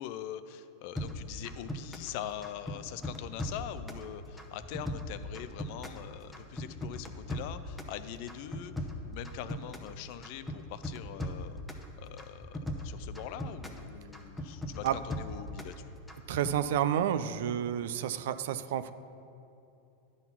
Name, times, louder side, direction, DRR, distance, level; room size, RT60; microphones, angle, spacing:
voice 1, 0.0-15.8, left 11 dB, 60° left, 12 dB, 0.4 m, -43 dB
sound 1, 1.0-2.1 2.4-4.0 4.4-6.0 6.3-7.9 8.3-9.9 10.2-11.9 12.2-13.8 14.1-15.8 16.1-16.6, left 1 dB, 5° left, 0.8 m, -38 dB
voice 2, 16.3-18.9, right 10 dB, 70° right, 12 dB, 0.4 m, -30 dB
10.5 x 4.0 x 5.8 m, 2.7 s
hypercardioid pair, 110°, 0 cm